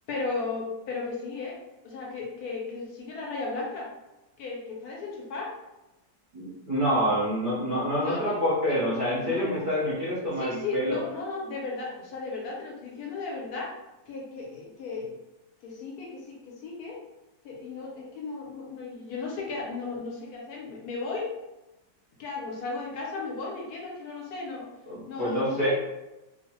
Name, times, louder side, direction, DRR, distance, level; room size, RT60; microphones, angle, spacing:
voice 1, 0.1-3.9 4.4-5.6 8.0-8.4 8.7-8.9 9.2-9.7 10.4-13.8 14.1-15.2 15.6-17.0 17.4-21.3 22.2-24.7 25.1-25.7, left 3 dB, 70° left, -2 dB, 1.0 m, -35 dB
voice 2, 6.3-11.0 24.9-25.7, equal, 50° right, -9 dB, 0.6 m, -27 dB
2.8 x 2.0 x 2.9 m, 0.99 s
omnidirectional pair, 1.9 m